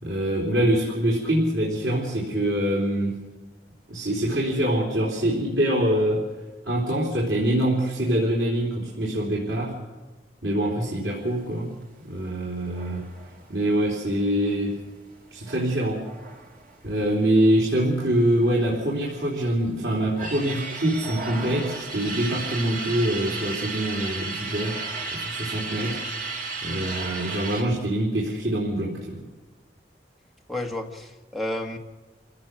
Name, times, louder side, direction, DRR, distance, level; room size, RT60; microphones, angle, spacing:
voice 1, 0.0-3.2 3.9-6.3 6.6-9.8 10.4-11.8 12.0-13.1 13.5-14.8 15.3-16.1 16.8-24.8 25.1-26.0 26.6-29.2, right 1 dB, 85° right, -5 dB, 3.8 m, -24 dB
sound 1, 12.7-17.8 18.1-18.2 18.4-19.4 19.8-27.6, right 4 dB, 50° right, 2.9 m, -34 dB
voice 2, 30.5-31.8, left 1 dB, ahead, 0 dB, 1.7 m, -31 dB
28.0 x 16.5 x 6.4 m, 1.3 s
head